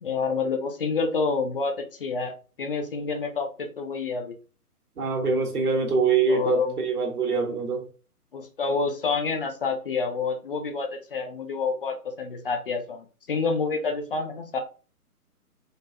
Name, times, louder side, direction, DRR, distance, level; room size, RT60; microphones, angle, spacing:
voice 1, 0.0-2.3 2.6-4.3 6.3-6.8 8.3-14.6, left 4 dB, 35° left, 0.6 m, -28 dB
voice 2, 5.0-7.8, right 4 dB, 70° right, 1.7 m, -24 dB
4.0 x 3.5 x 2.6 m
hypercardioid pair, 145°, 46 cm